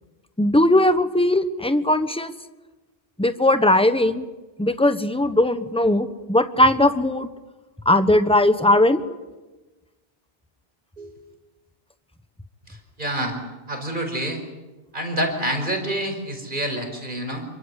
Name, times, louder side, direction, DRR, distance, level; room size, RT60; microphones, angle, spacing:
voice 1, 0.4-2.3 3.2-4.2 4.6-7.3 7.8-9.0, left 1 dB, 5° left, 10 dB, 1.2 m, -19 dB
voice 2, 12.7-13.4 13.7-14.4 14.9-17.5, right 1 dB, 50° right, 4 dB, 5.2 m, -27 dB
27.5 x 24.5 x 8.3 m, 1.2 s
omnidirectional pair, 1.1 m